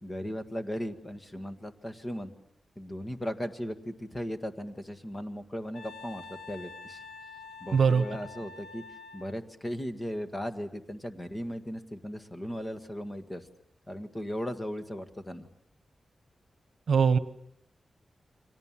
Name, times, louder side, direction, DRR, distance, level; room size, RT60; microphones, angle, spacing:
voice 1, 0.0-2.3 2.7-7.0 7.6-8.8 9.1-13.5 13.9-15.5, equal, 20° left, 8 dB, 1.7 m, -37 dB
Wind instrument woodwind instrument, 5.7-9.4, left 4 dB, 80° left, 1.7 m, -46 dB
voice 2, 7.7-8.0 16.9-17.2, right 6 dB, 75° right, 14 dB, 1.1 m, -21 dB
29.5 x 24.5 x 7.5 m, 0.70 s
wide cardioid pair, 160°, 0 cm